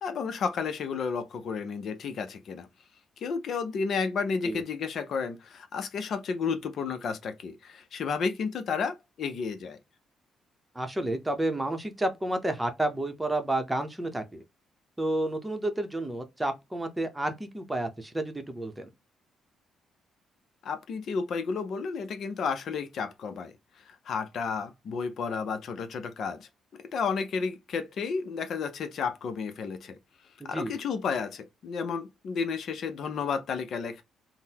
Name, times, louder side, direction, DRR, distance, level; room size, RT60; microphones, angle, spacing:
voice 1, 0.0-2.7 3.2-9.8 20.6-26.5 26.9-30.0 30.4-34.0, left 5 dB, 65° left, 0.5 m, -32 dB
voice 2, 10.7-14.4 15.0-18.9 30.4-30.7, right 1 dB, 10° right, 0.8 m, -30 dB
3.7 x 2.1 x 2.8 m
cardioid pair, 90°, 0 cm